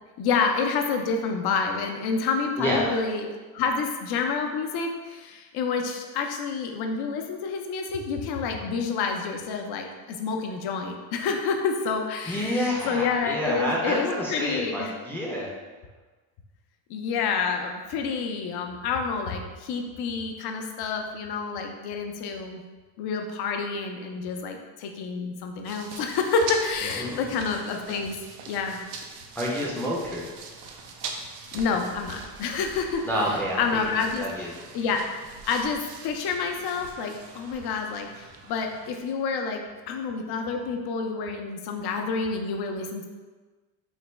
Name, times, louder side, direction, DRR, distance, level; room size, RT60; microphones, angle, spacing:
voice 1, 0.2-14.9 16.9-22.6 23.0-28.2 28.5-28.8 31.5-33.1 33.6-35.0 35.5-43.0, left 5 dB, 50° left, 4 dB, 0.5 m, -28 dB
voice 2, 2.6-3.0 12.3-15.5 27.0-27.2 29.4-30.3 33.0-33.9 34.2-34.5, equal, 5° left, -5 dB, 0.5 m, -28 dB
sound 1, 25.6-39.0, right 4 dB, 85° right, 0.6 m, -42 dB
3.3 x 2.1 x 3.1 m, 1.3 s
supercardioid pair, 100°, 50 cm